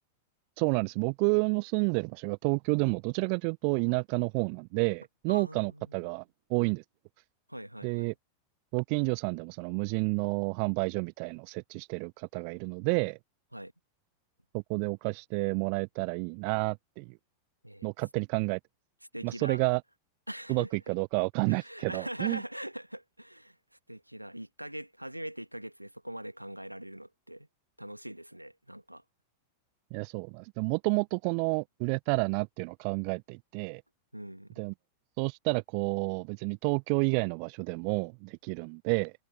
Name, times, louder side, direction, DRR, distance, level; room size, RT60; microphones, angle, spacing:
voice 1, 0.6-6.2 6.5-6.8 7.8-8.1 8.7-13.2 14.5-17.1 17.8-18.6 19.2-19.8 20.5-22.4 29.9-33.8 34.6-34.7 35.2-39.1, right 40 dB or more, 45° right, 0.4 m, -30 dB
voice 2, 5.3-6.1 7.5-8.2 13.5-13.7 17.6-17.9 19.1-19.6 20.3-20.7 21.5-23.6 23.9-27.5 27.8-29.0 34.1-34.7, right 1 dB, 90° right, 1.6 m, -42 dB
figure-of-eight pair, 90°, 0 cm